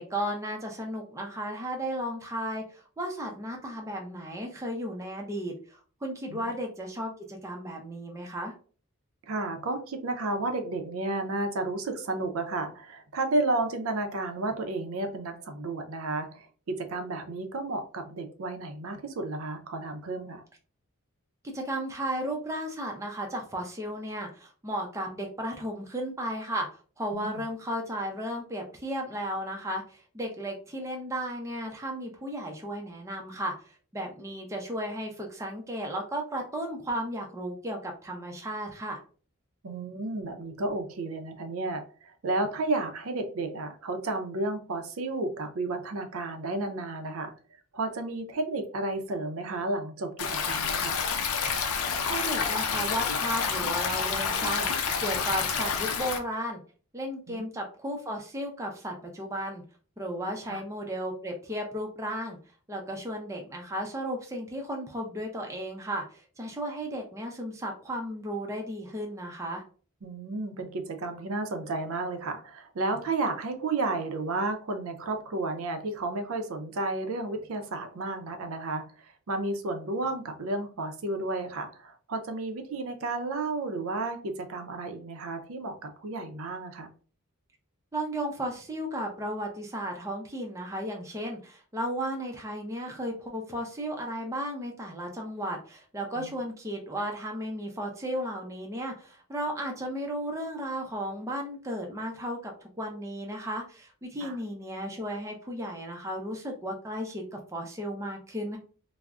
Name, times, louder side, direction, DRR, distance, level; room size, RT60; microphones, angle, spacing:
voice 1, 0.0-8.5 21.5-26.7 27.0-39.0 52.0-56.6 56.9-59.6 60.0-62.4 62.7-69.6 87.9-108.6, equal, 15° right, 1 dB, 0.4 m, -34 dB
voice 2, 9.3-20.4 27.1-27.4 39.6-47.3 47.7-51.0 57.3-57.5 60.5-60.6 70.0-86.9 96.2-96.3 104.2-104.4, right 2 dB, 70° right, 6 dB, 0.5 m, -32 dB
Stream, 50.2-56.2, left 6 dB, 80° left, 0.5 m, -29 dB
2.4 x 2.0 x 3.4 m, 0.40 s
head